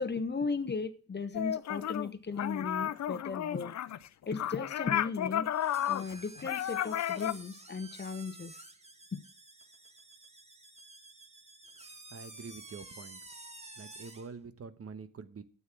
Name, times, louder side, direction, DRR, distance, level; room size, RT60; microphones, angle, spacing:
voice 1, 0.0-3.7 4.3-5.5 5.8-8.6 9.1-9.2, left 4 dB, 35° left, 1.0 m, -36 dB
sound 1, 1.3-2.1 2.4-7.3, left 11 dB, 55° left, 0.6 m, -33 dB
sound 2, 5.5-14.3, right 2 dB, 20° right, 1.5 m, -51 dB
voice 2, 11.9-13.2 13.8-15.4, right 5 dB, 45° right, 1.2 m, -46 dB
9.5 x 8.4 x 6.0 m
cardioid pair, 80°, 33 cm